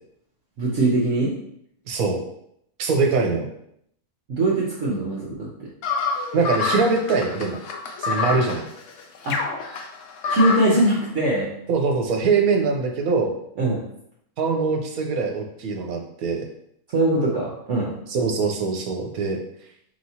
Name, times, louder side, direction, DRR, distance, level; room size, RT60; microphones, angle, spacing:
voice 1, 0.6-1.3 4.3-5.5 9.3-9.4 10.3-11.5 13.6-13.8 16.9-17.9, right 1 dB, 60° right, -5 dB, 1.0 m, -21 dB
voice 2, 1.9-2.2 2.8-3.4 6.3-7.6 8.0-8.6 11.7-13.3 14.4-16.4 18.1-19.4, right 4 dB, 80° right, 2 dB, 1.2 m, -22 dB
sound 1, 5.8-10.8, left 4 dB, 65° left, 0.9 m, -27 dB
4.8 x 3.0 x 2.8 m, 0.72 s
omnidirectional pair, 1.5 m